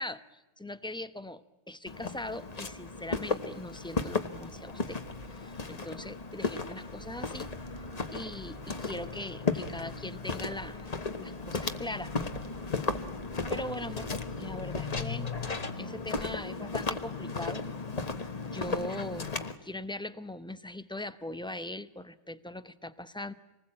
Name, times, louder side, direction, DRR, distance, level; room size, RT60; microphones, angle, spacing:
voice 1, 0.0-5.0 5.3-7.5 8.1-10.9 11.2-12.3 13.5-14.1 14.4-15.3 15.8-17.6 18.2-19.3 19.6-23.3, left 1 dB, 5° left, 12 dB, 0.8 m, -40 dB
Walk footsteps, 1.9-19.6, left 4 dB, 35° left, 1.3 m, -35 dB
sound 1, 4.3-13.9, right 4 dB, 60° right, 1.7 m, -51 dB
27.0 x 20.0 x 8.7 m, 1.1 s
omnidirectional pair, 1.2 m